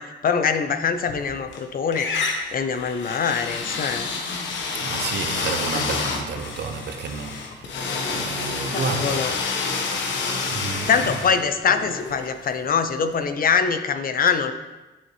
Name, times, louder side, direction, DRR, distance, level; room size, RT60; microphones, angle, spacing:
voice 1, 0.0-4.1 5.7-5.8 8.7-9.4 10.9-14.5, left 6 dB, 45° left, 0.6 m, -23 dB
sound 1, 1.0-1.6 1.9-12.8, left 4 dB, 70° left, 1.0 m, -29 dB
voice 2, 4.8-9.2 10.0-10.2 10.5-10.9, right 5 dB, 60° right, 0.8 m, -31 dB
7.4 x 7.1 x 3.3 m
cardioid pair, 90°, 20 cm